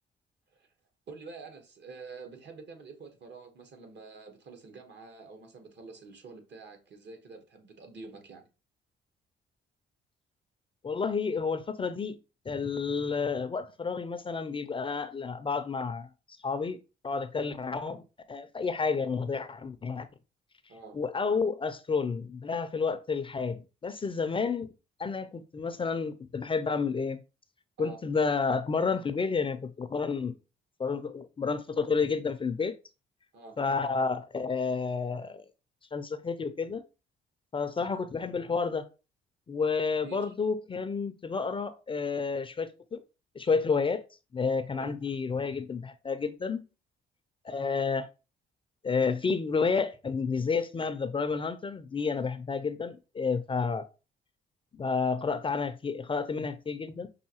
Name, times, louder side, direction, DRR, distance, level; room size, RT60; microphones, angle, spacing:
voice 1, 1.1-8.4 20.7-21.0 27.8-28.0 33.3-33.6 40.0-40.3 44.8-44.9, right 4 dB, 60° right, 1.2 m, -47 dB
voice 2, 10.8-12.2 12.5-16.1 16.4-16.8 17.0-18.0 18.3-20.1 20.9-24.7 25.0-27.2 27.8-30.3 30.8-32.8 33.6-35.4 35.9-36.8 37.5-38.9 39.5-43.0 43.4-44.0 44.3-46.6 47.4-48.1 48.8-53.9 54.7-57.1, left 5 dB, 25° left, 0.4 m, -30 dB
5.5 x 2.6 x 2.8 m
cardioid pair, 90°, 20 cm